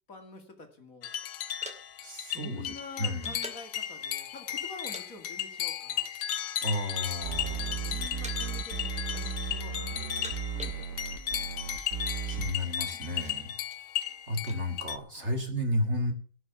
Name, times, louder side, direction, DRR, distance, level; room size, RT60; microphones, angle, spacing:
voice 1, 0.1-1.2 2.3-6.1 7.6-11.9 13.3-13.6 15.1-15.3, left 4 dB, 55° left, 5 dB, 2.6 m, -48 dB
sound 1, 1.0-15.0, left 10 dB, 75° left, 1.4 m, -35 dB
sound 2, 1.2-3.8 4.5-5.1 5.3-5.5 6.2-7.0 7.3-7.8 8.2-8.7 9.0-9.6 10.0-11.3 11.5-11.6 11.8-12.2 12.7-14.6, equal, 5° right, 2.3 m, -48 dB
voice 2, 2.0-3.4 6.6-7.8 12.3-13.5 14.3-16.1, left 1 dB, 40° right, 4 dB, 2.6 m, -32 dB
sound 3, 7.2-12.5, right 7 dB, 75° right, 1.7 m, -36 dB
17.5 x 6.3 x 7.0 m, 0.42 s
omnidirectional pair, 1.8 m